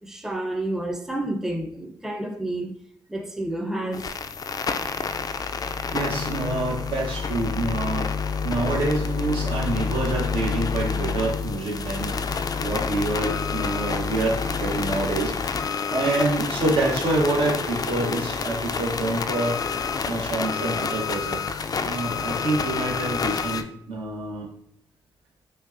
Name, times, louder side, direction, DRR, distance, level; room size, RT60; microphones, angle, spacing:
voice 1, 0.0-2.7 3.1-4.1, right 1 dB, 5° right, 0.6 m, -30 dB
sound 1, 3.9-23.6, left 5 dB, 40° left, 0.3 m, -28 dB
voice 2, 5.9-8.1 8.4-12.1 12.6-15.3 15.9-19.6 20.0-21.4 21.8-24.5, right 2 dB, 70° right, 1.0 m, -27 dB
5.2 x 2.2 x 2.5 m
supercardioid pair, 55°, 9 cm